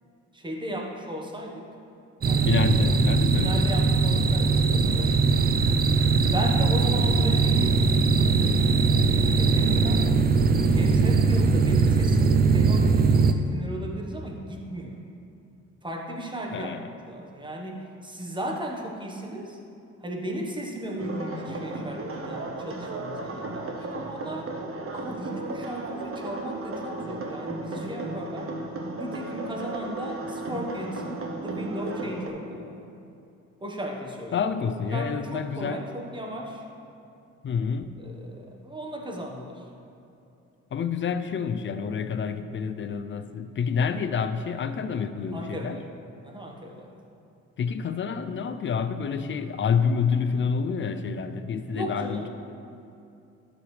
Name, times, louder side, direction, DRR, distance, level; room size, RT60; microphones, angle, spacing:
voice 1, 0.3-1.7 2.3-2.5 3.4-5.6 6.3-10.0 10.6-15.0 15.8-16.7 17.0-19.6 20.0-24.5 24.9-28.5 28.9-32.9 33.6-34.5 34.9-36.6 38.0-39.6 45.3-45.8 46.2-46.9 51.7-52.3, right 1 dB, 15° right, 0 dB, 1.2 m, -36 dB
sound 1, 2.2-13.3, right 4 dB, 30° right, 0.4 m, -21 dB
voice 2, 2.4-3.7 4.1-4.2 16.5-16.9 34.3-35.8 37.4-37.9 40.7-45.8 47.6-52.3, left 6 dB, 40° left, 10 dB, 0.5 m, -28 dB
sound 2, 21.0-32.3, right 2 dB, 45° right, 1.1 m, -35 dB
12.0 x 6.4 x 3.3 m, 2.6 s
cardioid pair, 90°, 30 cm